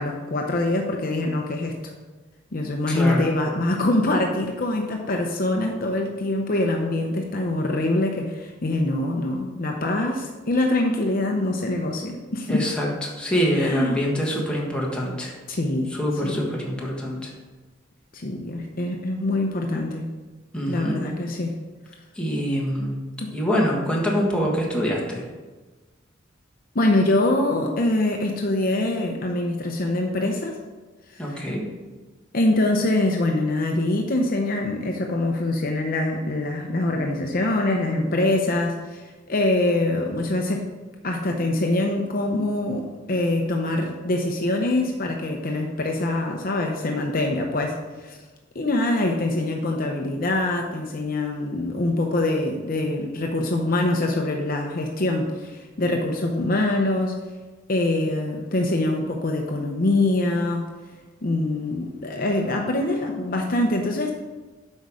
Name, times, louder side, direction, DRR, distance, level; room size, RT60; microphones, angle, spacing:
voice 1, 0.0-1.7 2.5-12.6 13.6-14.0 15.5-15.9 16.2-16.5 18.1-20.0 20.7-21.5 23.2-23.3 26.7-30.6 31.1-31.4 32.3-40.6 41.0-48.2 48.5-57.2 57.7-60.7 61.2-64.1, left 2 dB, 45° left, 2 dB, 0.7 m, -24 dB
voice 2, 2.9-3.3 12.5-15.3 15.9-17.3 20.5-21.0 22.1-23.0 23.3-25.2 31.2-31.6, equal, 5° left, -3 dB, 1.5 m, -25 dB
8.0 x 5.4 x 4.8 m, 1.3 s
head